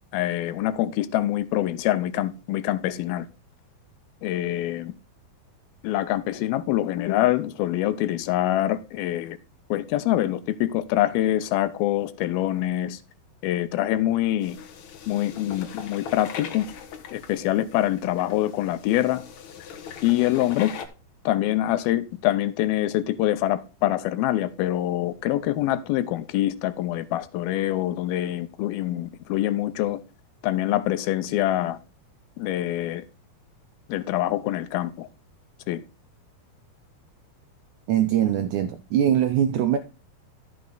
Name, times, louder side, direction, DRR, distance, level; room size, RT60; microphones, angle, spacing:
voice 1, 0.1-3.3 4.2-4.9 5.8-9.4 9.7-13.0 13.4-14.6 15.1-16.7 17.1-19.2 20.0-20.7 21.3-30.0 30.4-31.8 32.4-33.0 33.9-35.1 35.7-35.8, left 14 dB, 90° left, 2.6 m, -25 dB
sound 1, 14.4-20.9, left 7 dB, 60° left, 2.1 m, -40 dB
voice 2, 37.9-39.8, right 10 dB, 90° right, 1.7 m, -22 dB
13.0 x 6.1 x 3.9 m
omnidirectional pair, 4.3 m